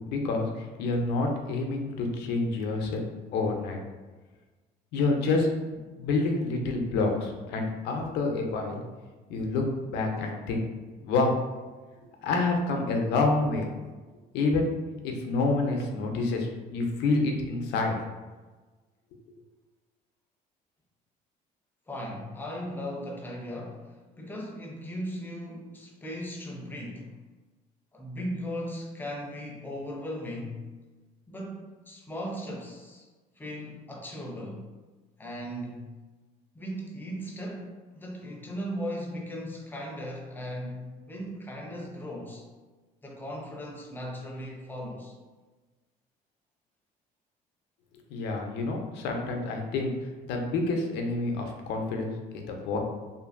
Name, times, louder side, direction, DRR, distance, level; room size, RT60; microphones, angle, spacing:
voice 1, 0.1-0.5 0.8-3.0 3.3-3.8 4.9-5.5 6.0-8.8 9.3-10.6 11.0-11.4 12.2-13.7 14.3-14.7 15.0-18.0 48.1-49.9 50.3-52.1 52.5-52.8, left 3 dB, 85° left, 2 dB, 0.5 m, -28 dB
voice 2, 21.9-27.2 27.9-30.7 31.3-33.1 33.4-34.7 35.2-35.9 36.5-42.4 43.0-45.2, equal, 10° left, -1 dB, 0.5 m, -37 dB
2.6 x 2.5 x 2.4 m, 1.3 s
cardioid pair, 110°, 17 cm